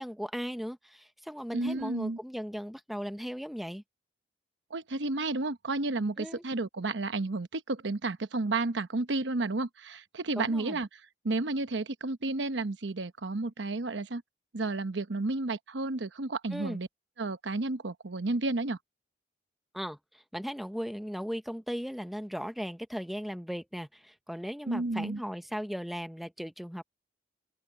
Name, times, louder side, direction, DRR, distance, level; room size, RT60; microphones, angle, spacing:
voice 1, 0.0-3.8 6.2-6.4 10.4-10.8 16.5-16.8 19.7-26.8, equal, ahead, 0.8 m, -37 dB
voice 2, 1.5-2.2 4.7-11.0 11.2-14.2 14.5-16.9 17.2-18.8 24.7-25.2, right 2 dB, 85° right, 0.9 m, -32 dB
open air
head